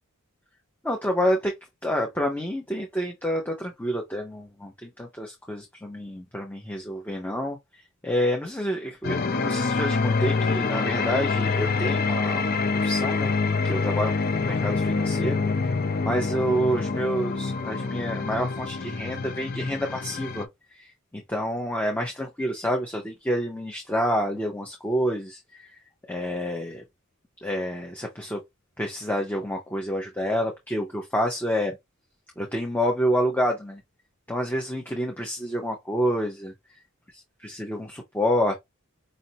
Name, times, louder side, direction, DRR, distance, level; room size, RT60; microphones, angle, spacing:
voice 1, 0.8-1.5 1.8-7.6 8.0-12.6 12.8-13.3 13.6-15.7 16.0-20.5 20.8-25.7 26.1-26.8 27.4-28.4 28.8-31.8 32.4-33.8 34.3-36.5 37.4-38.5, equal, 10° left, 0.8 m, -28 dB
sound 1, 9.0-20.4, left 4 dB, 45° left, 0.5 m, -26 dB
5.3 x 2.7 x 2.8 m
head